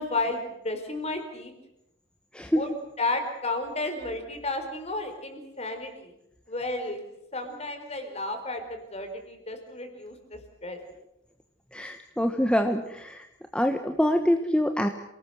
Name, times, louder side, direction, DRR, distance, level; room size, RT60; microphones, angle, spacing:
voice 1, 0.0-1.5 2.5-6.1 6.5-7.0 7.3-10.8, left 2 dB, 35° left, 7 dB, 4.5 m, -32 dB
voice 2, 2.3-2.6 11.7-13.2 13.5-14.9, equal, 5° left, 6 dB, 1.2 m, -25 dB
28.0 x 18.5 x 8.0 m, 0.85 s
head